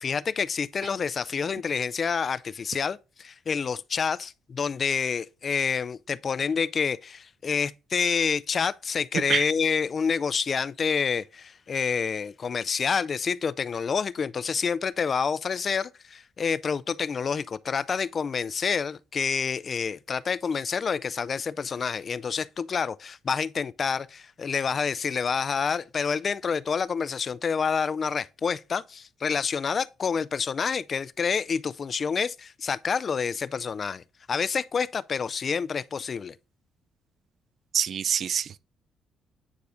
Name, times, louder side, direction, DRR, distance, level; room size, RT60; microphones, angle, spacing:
voice 1, 0.0-36.4, left 6 dB, 45° left, 0.3 m, -28 dB
voice 2, 37.7-38.6, right 8 dB, 60° right, 0.4 m, -26 dB
9.6 x 4.7 x 2.6 m
cardioid pair, 90°, 0 cm